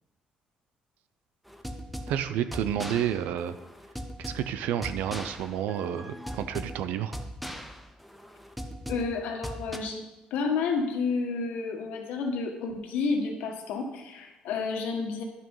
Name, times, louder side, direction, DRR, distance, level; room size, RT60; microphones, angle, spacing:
sound 1, 1.5-9.8, equal, ahead, 0.9 m, -39 dB
voice 1, 2.1-3.6 4.2-7.2, right 10 dB, 90° right, 11 dB, 0.7 m, -30 dB
voice 2, 8.9-10.0 10.3-15.2, left 4 dB, 90° left, 3 dB, 1.8 m, -30 dB
11.0 x 6.0 x 5.6 m, 1.1 s
cardioid pair, 125°, 3 cm